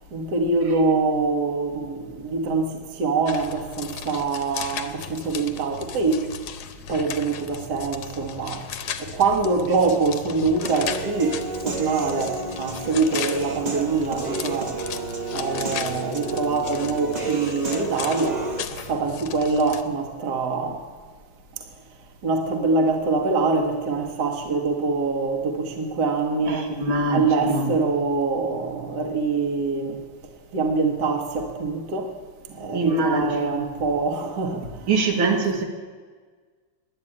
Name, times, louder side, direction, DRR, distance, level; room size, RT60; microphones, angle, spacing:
voice 1, 0.1-6.3 6.9-8.6 9.0-11.4 11.6-14.7 15.3-18.4 18.9-20.8 22.2-26.6 27.1-30.0 30.5-32.1 32.5-34.9, right 4 dB, 55° right, 4 dB, 1.8 m, -24 dB
sound 1, 3.3-19.8, left 7 dB, 65° left, 1.2 m, -36 dB
Human voice / Piano, 10.6-18.6, right 3 dB, 35° right, 0.6 m, -31 dB
voice 2, 26.5-27.7 32.7-33.7 34.9-35.6, right 2 dB, 85° right, 2 dB, 2.3 m, -24 dB
11.0 x 9.4 x 8.7 m, 1.5 s
omnidirectional pair, 2.2 m